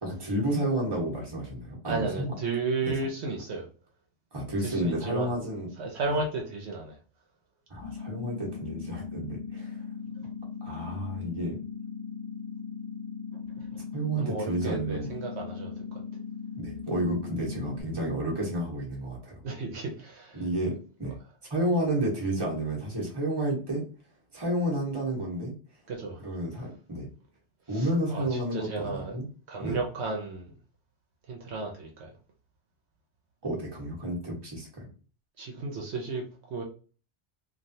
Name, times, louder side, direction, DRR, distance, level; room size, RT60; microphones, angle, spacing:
voice 1, 0.0-2.3 2.9-3.0 4.3-5.7 7.7-9.8 10.6-11.5 13.9-15.1 16.6-19.4 20.3-21.2 21.5-23.8 24.3-25.5 26.2-27.1 27.7-29.2 29.6-29.8 33.4-34.8, right 1 dB, 20° right, -2 dB, 1.0 m, -31 dB
voice 2, 1.8-3.7 4.6-5.3 5.8-7.0 10.1-10.3 13.5-13.9 14.1-16.0 19.4-20.4 25.9-26.2 27.7-29.2 29.5-30.5 31.3-32.1 35.4-36.6, right 3 dB, 70° right, 1 dB, 0.9 m, -34 dB
sound 1, 7.8-17.8, left 6 dB, 75° left, 0.9 m, -39 dB
3.1 x 2.4 x 2.7 m, 0.39 s
omnidirectional pair, 1.2 m